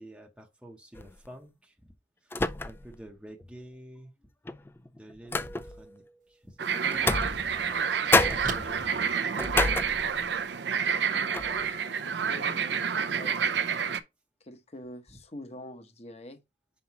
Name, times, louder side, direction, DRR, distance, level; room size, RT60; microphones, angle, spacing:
voice 1, 0.0-1.8 2.2-2.3 2.6-4.1 4.9-9.7 15.1-15.2, right 1 dB, 5° right, 0.8 m, -49 dB
sound 1, 1.0-1.3 2.3-3.0 3.4-3.5 4.5-5.9 6.9-7.8 8.1-10.4 10.9-11.0 11.3-11.7, left 2 dB, 15° left, 0.3 m, -29 dB
sound 2, 6.2-6.3 6.9-9.9, right 4 dB, 45° right, 1.0 m, -42 dB
sound 3, 6.6-14.0, right 7 dB, 80° right, 0.6 m, -29 dB
voice 2, 11.1-13.6 14.4-16.4, left 1 dB, 35° left, 0.9 m, -46 dB
6.8 x 5.6 x 2.9 m
head